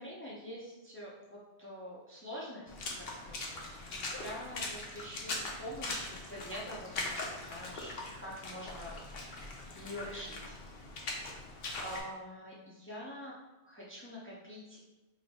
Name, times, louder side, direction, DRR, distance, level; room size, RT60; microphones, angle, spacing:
voice 1, 0.0-9.0 9.5-10.6 11.8-13.4 13.6-14.8, equal, 15° left, -5 dB, 0.5 m, -46 dB
Water / Splash splatter, 2.7-12.0, left 2 dB, 60° left, 0.8 m, -41 dB
3.2 x 2.6 x 4.1 m, 1.0 s
omnidirectional pair, 1.1 m